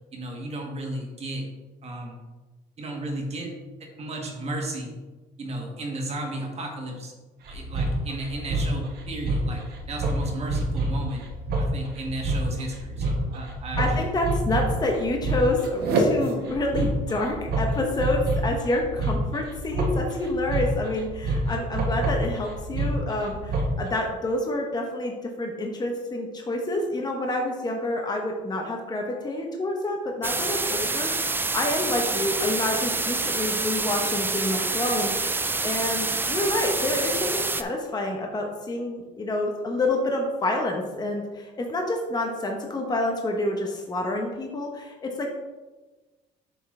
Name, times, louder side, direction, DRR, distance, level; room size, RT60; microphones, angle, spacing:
voice 1, 0.1-1.5 1.8-2.2 2.8-3.5 3.8-4.9 5.4-7.1 7.5-11.2 11.6-14.1, right 1 dB, 40° right, 1 dB, 1.7 m, -34 dB
sound 1, 7.5-23.9, right 2 dB, 70° right, 1.5 m, -27 dB
voice 2, 13.8-25.1 25.4-45.3, left 1 dB, 25° left, 1 dB, 1.0 m, -28 dB
sound 2, 30.2-37.6, right 3 dB, 10° right, 0.4 m, -27 dB
7.7 x 6.1 x 3.3 m, 1.2 s
cardioid pair, 110°, 17 cm